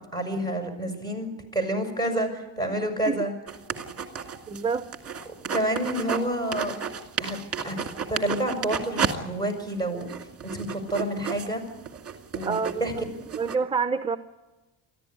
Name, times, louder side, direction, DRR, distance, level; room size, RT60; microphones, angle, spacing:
voice 1, 0.1-3.3 5.5-6.7 7.2-7.4 7.6-7.8 8.1-10.1 10.4-11.6 12.3-12.9, right 1 dB, 10° left, 7 dB, 6.4 m, -28 dB
sound 1, 3.5-6.2 6.5-9.1 9.5-9.6 10.0-13.6, right 7 dB, 35° right, 2.1 m, -32 dB
voice 2, 4.5-4.9 12.4-12.8 13.4-14.2, right 5 dB, 10° right, 10 dB, 0.8 m, -27 dB
23.5 x 14.5 x 9.5 m, 1.1 s
cardioid pair, 110°, 43 cm